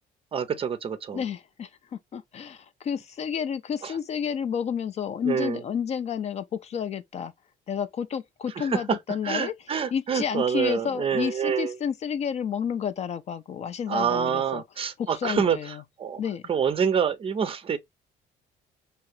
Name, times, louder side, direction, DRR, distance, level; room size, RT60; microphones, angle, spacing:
voice 1, 0.3-1.2 3.8-3.9 5.2-5.6 8.6-9.0 9.2-11.7 13.9-15.6 16.0-16.2 16.5-17.8, right 7 dB, 35° right, 0.5 m, -26 dB
voice 2, 1.1-7.3 7.7-9.5 9.9-14.6 15.0-15.8 16.2-16.4, left 7 dB, 40° left, 0.4 m, -30 dB
2.8 x 2.4 x 3.1 m
cardioid pair, 110°, 17 cm